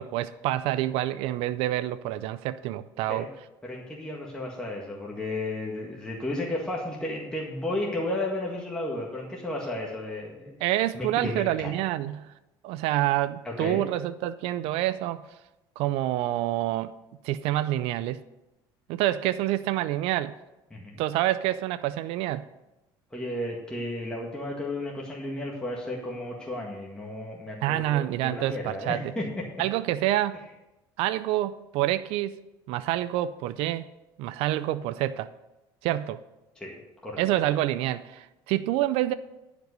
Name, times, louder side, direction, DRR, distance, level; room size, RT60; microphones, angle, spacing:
voice 1, 0.0-3.3 10.6-12.3 12.6-15.2 15.8-16.9 17.2-18.2 18.9-20.4 21.0-22.5 27.6-29.0 29.6-30.4 31.0-32.4 32.7-33.9 34.2-35.3 35.8-36.2 37.2-39.1, right 14 dB, 75° right, 13 dB, 0.4 m, -27 dB
voice 2, 3.6-10.5 10.9-11.7 13.4-13.9 20.7-21.0 23.1-29.3 36.6-36.8 37.0-37.2, left 1 dB, 10° left, -3 dB, 1.8 m, -33 dB
10.5 x 5.1 x 6.6 m, 0.98 s
cardioid pair, 105°, 10 cm